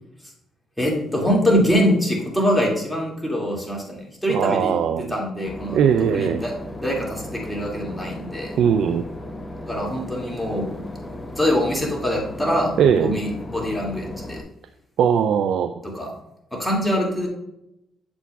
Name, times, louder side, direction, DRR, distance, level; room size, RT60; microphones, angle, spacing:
voice 1, 0.8-5.8 6.1-6.6 6.8-8.6 9.7-10.7 11.3-14.4 15.8-16.1 16.5-17.3, equal, 5° left, -3 dB, 2.2 m, -24 dB
voice 2, 4.3-5.1 5.7-6.4 8.6-9.0 12.8-13.1 15.0-15.8, right 8 dB, 75° right, 10 dB, 0.3 m, -19 dB
Boat Water vehicle / Engine, 5.4-14.4, left 1 dB, 20° left, 0.8 m, -36 dB
8.2 x 6.9 x 2.3 m, 0.86 s
cardioid pair, 90°, 0 cm